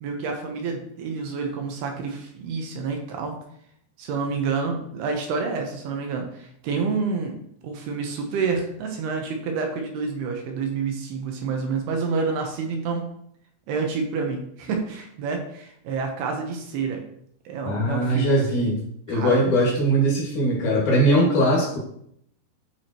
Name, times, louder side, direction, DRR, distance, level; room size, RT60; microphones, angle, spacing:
voice 1, 0.0-3.4 4.0-7.4 7.6-13.1 13.7-17.0 17.5-18.7 19.1-19.5, right 5 dB, 75° right, 3 dB, 2.6 m, -28 dB
voice 2, 17.6-18.8 19.1-21.8, equal, 55° left, -3 dB, 2.7 m, -21 dB
11.5 x 4.8 x 3.0 m, 0.70 s
omnidirectional pair, 5.3 m